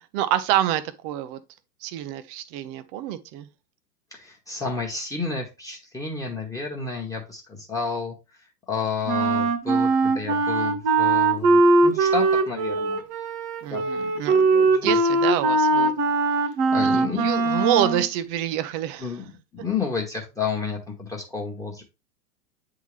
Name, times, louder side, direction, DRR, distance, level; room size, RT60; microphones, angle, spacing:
voice 1, 0.1-1.4 1.8-3.5 13.6-14.4 14.7-16.0 16.7-19.1, right 12 dB, 25° right, 0.5 m, -27 dB
voice 2, 4.1-8.1 8.7-13.0 13.7-13.8 14.3-15.0 16.7-17.3 19.0-19.3 19.6-21.8, left 5 dB, 5° left, 1.2 m, -31 dB
Wind instrument woodwind instrument, 9.0-18.1, right 3 dB, 40° right, 1.2 m, -21 dB
9.0 x 3.8 x 3.3 m
figure-of-eight pair, 105°, 49 cm